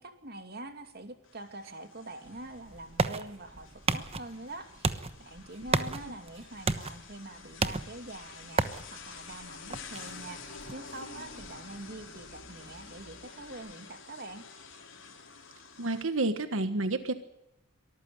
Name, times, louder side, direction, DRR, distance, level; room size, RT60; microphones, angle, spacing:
voice 1, 0.0-14.5, right 2 dB, 50° right, 7 dB, 2.6 m, -45 dB
sound 1, 1.2-16.0, left 5 dB, 70° left, 4.7 m, -49 dB
sound 2, 2.3-13.7, right 3 dB, 30° right, 1.1 m, -36 dB
voice 2, 15.8-17.1, right 2 dB, 90° right, 10 dB, 1.4 m, -29 dB
23.5 x 14.5 x 9.5 m, 0.88 s
head